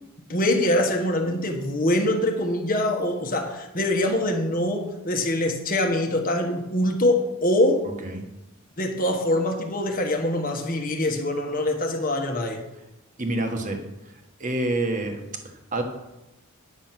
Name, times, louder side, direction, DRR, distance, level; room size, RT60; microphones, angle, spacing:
voice 1, 0.3-7.8 8.8-12.6, left 1 dB, 40° left, 3 dB, 1.2 m, -24 dB
voice 2, 13.2-13.8 14.4-15.3 15.7-15.8, right 2 dB, 35° right, 4 dB, 1.3 m, -27 dB
9.4 x 7.0 x 5.9 m, 0.96 s
head